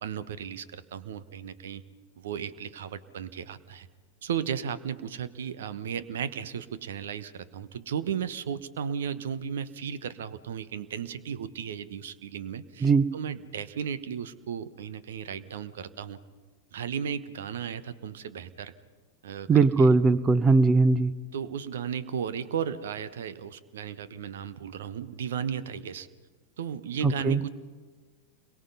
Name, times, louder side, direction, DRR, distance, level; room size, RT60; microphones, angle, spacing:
voice 1, 0.0-1.8 2.2-3.9 4.2-16.2 16.7-18.7 19.2-19.9 21.3-26.1 26.6-27.5, right 8 dB, 60° right, 14 dB, 1.2 m, -35 dB
voice 2, 19.5-21.1 27.2-27.4, right 4 dB, 20° right, 16 dB, 1.0 m, -20 dB
29.0 x 22.5 x 5.4 m, 1.4 s
figure-of-eight pair, 90°, 0 cm